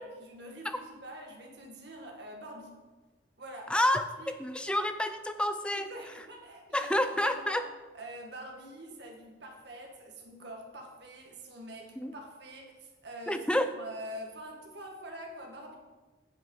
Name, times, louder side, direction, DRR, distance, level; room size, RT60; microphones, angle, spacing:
voice 1, 0.0-2.8 3.4-3.7 4.2-4.3 5.7-7.6 7.9-13.4 13.7-15.7, right 1 dB, 55° right, 1 dB, 1.6 m, -45 dB
voice 2, 3.7-4.0 4.4-5.9 6.7-7.6 12.0-12.1 13.3-13.7, left 1 dB, 5° left, 9 dB, 0.4 m, -29 dB
8.9 x 5.7 x 5.4 m, 1.2 s
head